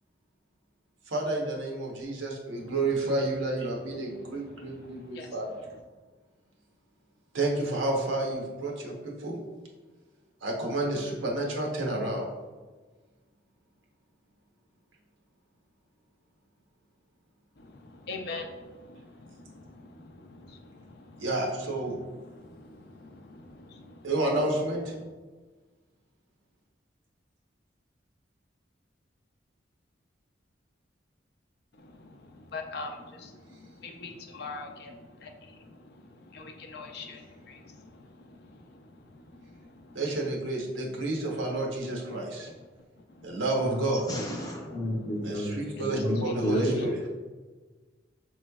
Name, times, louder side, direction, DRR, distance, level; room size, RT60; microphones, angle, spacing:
voice 1, 1.1-5.5 7.3-9.4 10.4-12.3 21.2-22.0 24.0-24.9 39.9-42.5 43.2-44.0 45.2-47.0, right 2 dB, 90° right, -1 dB, 0.9 m, -30 dB
voice 2, 18.1-18.5 32.5-32.9 34.0-34.9 35.2-35.3 36.3-36.4 36.7-37.2 46.3-46.9, left 4 dB, 55° left, 3 dB, 0.5 m, -38 dB
voice 3, 43.6-46.8, equal, 20° left, -2 dB, 0.7 m, -31 dB
6.0 x 3.1 x 2.2 m, 1.3 s
head